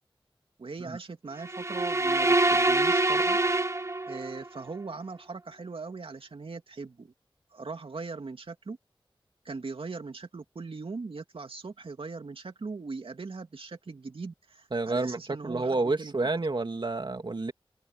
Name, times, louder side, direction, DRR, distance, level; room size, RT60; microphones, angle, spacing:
voice 1, 0.6-3.4 4.1-7.1 7.5-8.8 9.4-16.3, right 4 dB, 70° right, 2.6 m, -40 dB
sound 1, 1.4-4.5, right 2 dB, 30° right, 1.0 m, -25 dB
voice 2, 14.7-17.5, right 3 dB, 55° right, 2.8 m, -29 dB
cardioid pair, 45°, 10 cm